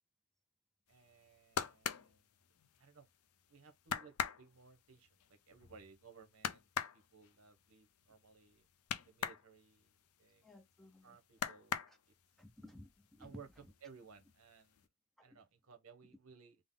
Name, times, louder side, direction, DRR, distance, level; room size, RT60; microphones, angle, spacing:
voice 1, 0.9-2.2 2.8-3.1 3.5-6.7 6.9-8.7 9.1-10.5 11.0-11.8 13.2-13.5 13.8-14.8 15.2-16.6, right 6 dB, 75° right, 0.8 m, -60 dB
sound 1, 1.1-3.1 3.5-3.6 3.8-9.5 9.8-10.9 11.3-12.4 12.8-13.4 13.7-14.4 14.8-14.9, left 8 dB, 75° left, 0.4 m, -41 dB
voice 2, 10.4-11.2 11.9-12.0 12.4-13.4 15.2-15.4, left 1 dB, ahead, 0.4 m, -56 dB
3.7 x 2.0 x 3.6 m
head